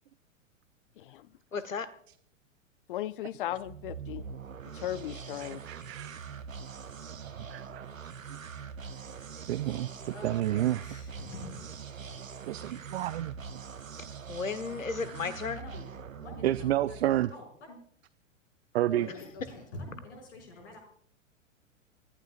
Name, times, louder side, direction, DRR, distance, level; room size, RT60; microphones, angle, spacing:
voice 1, 1.0-1.3 2.9-4.2 4.6-5.6, left 13 dB, 45° left, 18 dB, 0.6 m, -37 dB
voice 2, 1.5-1.9 14.3-15.6, left 5 dB, 80° left, 12 dB, 1.3 m, -34 dB
sound 1, 3.5-17.3, right 6 dB, 85° right, 0.9 m, -43 dB
voice 3, 5.4-6.2 7.4-7.8 9.5-9.9 10.2-10.8 12.5-13.3 16.4-17.3 18.7-19.1, right 13 dB, 55° right, 18 dB, 0.5 m, -29 dB
voice 4, 10.1-11.7 12.0-12.1 12.5-12.8 15.0-15.9 16.2-17.0 17.3-17.8 18.9-20.8, left 2 dB, 60° left, 3 dB, 6.3 m, -46 dB
27.0 x 15.5 x 2.5 m, 0.62 s
figure-of-eight pair, 100°, 39 cm